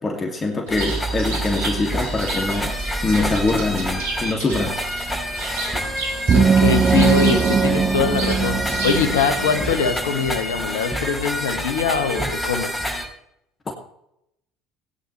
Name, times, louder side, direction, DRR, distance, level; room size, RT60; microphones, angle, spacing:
voice 1, 0.0-2.7 3.0-4.8 13.7-13.8, left 3 dB, 30° left, 2 dB, 2.5 m, -23 dB
sound 1, 0.7-13.1, equal, 10° left, 5.5 m, -27 dB
Bird, 0.7-9.7, right 3 dB, 75° right, 2.8 m, -34 dB
voice 2, 6.3-12.7, left 5 dB, 80° left, 7 dB, 1.7 m, -23 dB
sound 2, 6.3-9.8, right 5 dB, 35° right, 1.0 m, -19 dB
18.5 x 10.0 x 3.3 m, 0.77 s
figure-of-eight pair, 65°, 0 cm